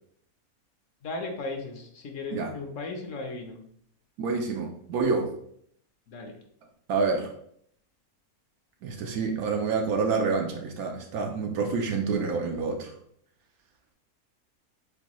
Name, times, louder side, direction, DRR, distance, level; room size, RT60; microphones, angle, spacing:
voice 1, 1.0-3.6 6.1-6.4, left 3 dB, 60° left, 4 dB, 1.0 m, -36 dB
voice 2, 4.2-5.3 6.9-7.3 8.8-12.9, right 4 dB, 80° right, 2 dB, 1.1 m, -28 dB
6.8 x 2.3 x 3.0 m, 0.67 s
omnidirectional pair, 1.6 m